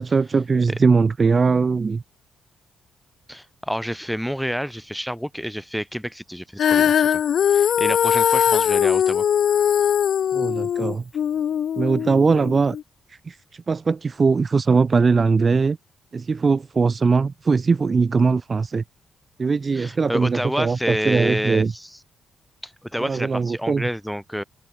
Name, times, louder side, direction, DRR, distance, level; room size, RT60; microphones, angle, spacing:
voice 1, 0.0-2.0 10.3-11.1 11.8-12.8 13.1-15.8 16.1-18.8 19.4-21.7 23.0-23.8, right 4 dB, 30° right, 0.6 m, -20 dB
voice 2, 3.3-7.2 7.5-9.2 19.7-22.0 22.6-24.4, equal, ahead, 2.2 m, -28 dB
Female singing, 6.6-12.8, left 9 dB, 60° left, 0.9 m, -20 dB
cardioid pair, 130°, 0 cm